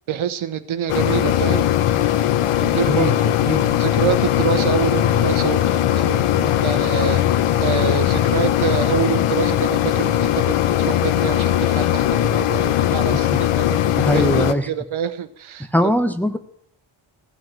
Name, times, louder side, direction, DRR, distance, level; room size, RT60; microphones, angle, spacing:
voice 1, 0.1-1.7 2.6-15.9, right 8 dB, 70° right, 11 dB, 1.0 m, -26 dB
sound 1, 0.9-14.5, left 12 dB, 85° left, 0.8 m, -19 dB
voice 2, 2.6-3.2 3.5-3.6 13.1-13.2 14.0-14.7 15.7-16.4, equal, 5° left, 7 dB, 1.0 m, -21 dB
15.5 x 7.9 x 6.1 m, 0.70 s
cardioid pair, 75°, 50 cm